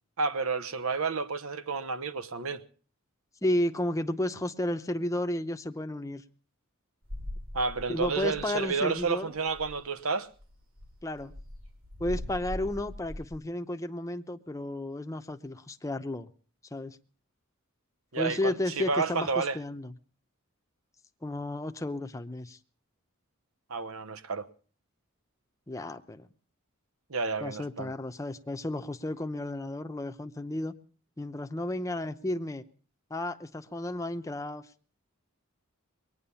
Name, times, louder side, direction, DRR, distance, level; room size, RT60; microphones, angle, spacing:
voice 1, 0.2-2.6 7.5-10.3 18.1-19.6 23.7-24.5 27.1-27.9, right 4 dB, 80° right, 1.0 m, -30 dB
voice 2, 3.4-6.2 7.9-9.3 11.0-11.3 12.0-16.3 16.7-17.0 18.2-19.9 21.2-22.6 25.7-26.3 27.4-30.7 31.2-32.6 33.1-34.6, left 1 dB, 15° left, 0.7 m, -33 dB
sound 1, 7.0-8.7 9.0-9.1 9.4-9.9 10.4-13.4, left 1 dB, 65° right, 3.4 m, -41 dB
21.0 x 9.7 x 7.0 m
head